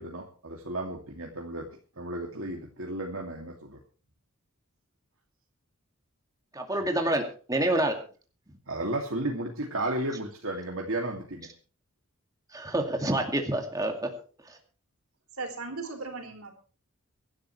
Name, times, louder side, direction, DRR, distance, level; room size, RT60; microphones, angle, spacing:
voice 1, 0.0-3.8 8.7-11.5, right 1 dB, 70° right, 0 dB, 2.6 m, -33 dB
voice 2, 6.5-7.9 12.5-14.1, right 1 dB, 15° right, 3 dB, 2.3 m, -27 dB
voice 3, 15.3-16.5, right 3 dB, 90° right, 5 dB, 4.5 m, -37 dB
24.0 x 12.0 x 3.3 m, 0.38 s
head